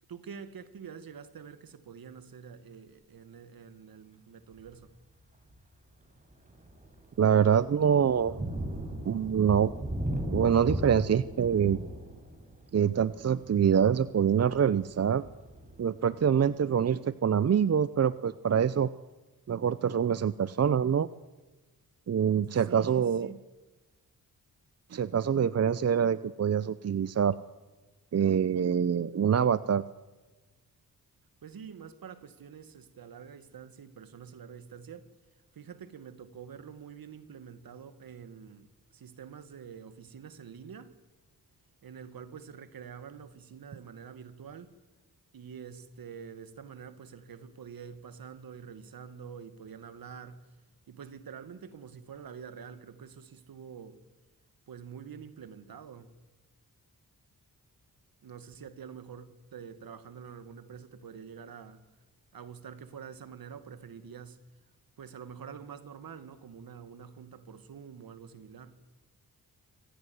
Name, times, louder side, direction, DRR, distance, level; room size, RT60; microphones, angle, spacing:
voice 1, 0.1-4.9 22.7-23.4 31.4-35.1 35.5-38.7 38.9-40.9 41.8-44.7 45.3-50.5 50.9-54.0 54.7-56.1 58.2-61.8 62.3-64.4 65.0-68.7, right 7 dB, 70° right, 2.2 m, -46 dB
Thunder, 4.5-4.8 5.4-5.6 6.0-16.6, right 1 dB, 20° right, 5.7 m, -38 dB
voice 2, 7.2-8.5 9.0-9.7 10.3-11.8 12.7-15.2 15.8-18.9 19.5-21.1 22.1-23.3 24.9-27.4 28.1-29.8, right 8 dB, 45° right, 0.7 m, -25 dB
26.0 x 16.0 x 9.5 m
cardioid pair, 95°, 36 cm